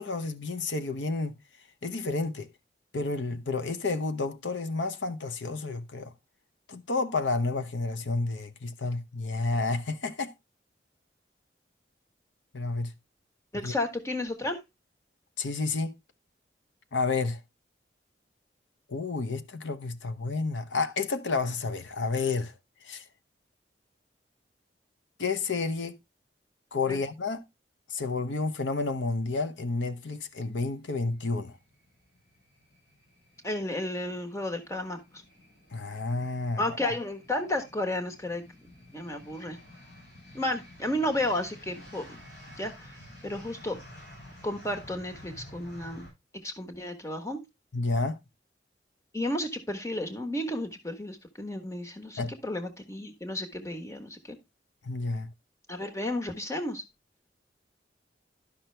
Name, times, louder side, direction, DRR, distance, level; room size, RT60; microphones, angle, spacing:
voice 1, 0.0-1.4 1.8-2.5 2.9-6.1 6.7-10.3 12.5-12.9 13.6-13.7 15.4-15.9 16.9-17.4 18.9-22.5 22.8-23.0 25.2-26.0 26.7-27.4 27.9-31.6 35.7-36.6 47.7-48.2 52.2-52.3 54.8-55.3, left 3 dB, 90° left, 0.9 m, -30 dB
voice 2, 13.5-14.6 26.9-27.0 33.4-35.0 36.6-38.4 38.9-39.6 40.3-42.2 42.6-42.9 43.2-43.8 44.4-46.1 46.4-47.4 49.1-54.4 55.7-56.8, left 1 dB, 15° left, 1.3 m, -32 dB
sound 1, 30.3-46.1, left 1 dB, 70° left, 7.1 m, -51 dB
11.5 x 6.0 x 3.3 m
head